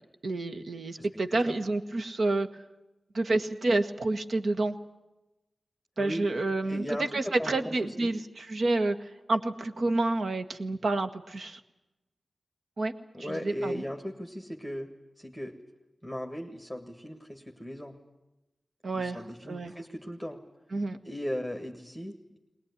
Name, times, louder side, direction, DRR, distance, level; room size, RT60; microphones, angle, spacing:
voice 1, 0.2-2.5 3.1-4.7 6.0-11.6 12.8-12.9 13.3-13.8 18.8-19.2 19.5-19.7 20.7-21.0, right 2 dB, 65° right, 8 dB, 1.5 m, -29 dB
voice 2, 1.0-1.5 6.0-6.3 6.7-8.1 13.1-15.5 16.0-18.0 18.9-20.4 21.0-22.4, equal, ahead, 3 dB, 1.7 m, -37 dB
21.5 x 20.0 x 9.6 m, 1.0 s
wide cardioid pair, 115°, 0 cm